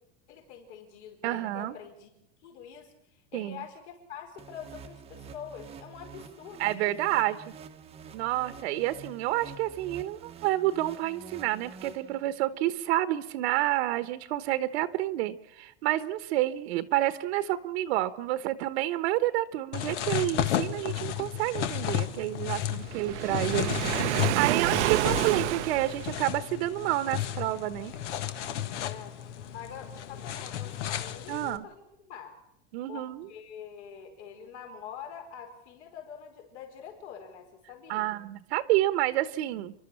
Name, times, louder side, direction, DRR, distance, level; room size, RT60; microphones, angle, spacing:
voice 1, 0.3-2.1 2.4-6.9 28.7-32.4 32.9-38.2, left 8 dB, 75° left, 3 dB, 5.0 m, -45 dB
voice 2, 1.2-1.7 3.3-3.6 6.6-7.4 8.1-27.9 31.3-31.6 32.7-33.3 37.9-39.7, right 15 dB, 65° right, 12 dB, 1.1 m, -29 dB
sound 1, 4.4-12.5, right 6 dB, 15° right, 0.9 m, -48 dB
sound 2, 19.7-31.6, left 11 dB, 90° left, 1.7 m, -33 dB
Waves surf, 22.9-26.4, right 15 dB, 85° right, 0.8 m, -29 dB
29.5 x 12.0 x 7.3 m, 0.80 s
supercardioid pair, 155°, 34 cm